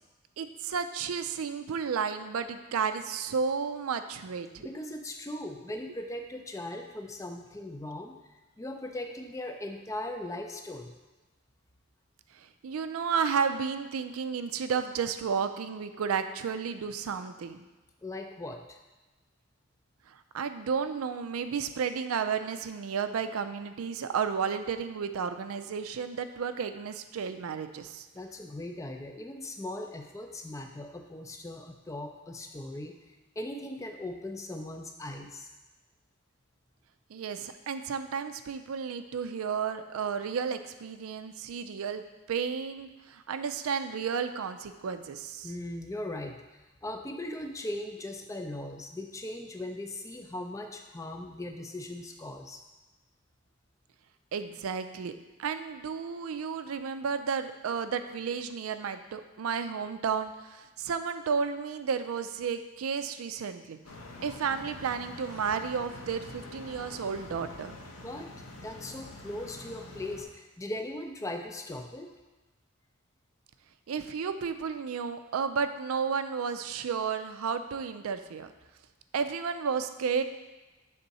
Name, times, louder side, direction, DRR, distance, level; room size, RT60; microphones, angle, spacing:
voice 1, 0.4-4.5 12.3-17.7 20.1-28.1 37.1-42.0 42.3-45.5 54.3-55.1 55.4-63.8 64.2-67.8 73.9-78.5 79.1-80.2, right 6 dB, 90° right, 10 dB, 0.4 m, -32 dB
voice 2, 4.6-10.9 18.0-18.8 28.1-33.0 33.4-35.5 45.4-46.4 46.8-52.6 68.0-68.3 68.6-72.1, left 1 dB, 15° left, 4 dB, 0.4 m, -39 dB
sound 1, 63.8-70.2, left 2 dB, 90° left, 0.8 m, -46 dB
6.7 x 3.6 x 4.0 m, 1.1 s
head